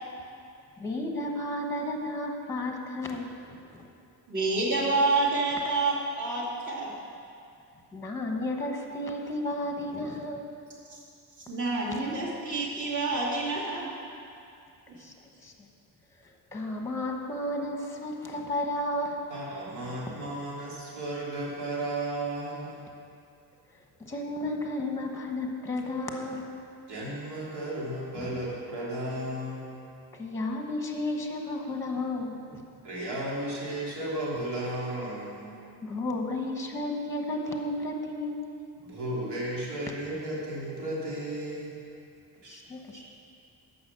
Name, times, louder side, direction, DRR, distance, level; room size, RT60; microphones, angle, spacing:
voice 1, 0.8-3.8 7.9-10.5 15.0-15.1 15.4-15.5 16.5-19.3 20.1-20.2 24.0-26.5 28.1-28.4 30.1-32.6 35.8-38.5 42.5-43.0, left 1 dB, 5° left, 2 dB, 1.0 m, -33 dB
voice 2, 4.3-6.9 10.9-11.0 11.4-13.9, right 3 dB, 45° right, -6 dB, 2.5 m, -28 dB
voice 3, 19.3-22.8 26.9-29.6 32.8-35.5 38.8-41.7 42.4-42.6, right 1 dB, 85° right, -6 dB, 3.2 m, -34 dB
11.0 x 6.0 x 7.4 m, 2.5 s
wide cardioid pair, 180°, 39 cm